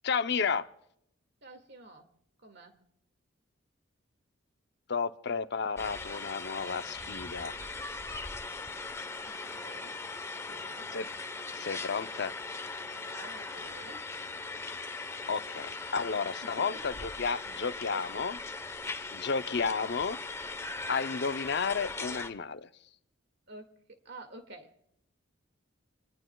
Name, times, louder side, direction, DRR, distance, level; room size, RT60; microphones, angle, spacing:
voice 1, 0.0-0.7 4.9-7.5 10.9-11.1 11.5-12.3 15.3-18.4 19.1-20.2 20.9-22.7, left 5 dB, 60° left, 0.6 m, -32 dB
voice 2, 1.4-2.1 2.4-2.8 8.9-10.0 10.3-10.9 12.9-14.1 16.4-16.9 17.5-18.3 23.5-24.8, right 2 dB, 60° right, 2.0 m, -51 dB
sound 1, 5.8-22.3, left 3 dB, 15° left, 0.9 m, -39 dB
27.0 x 19.5 x 2.3 m
head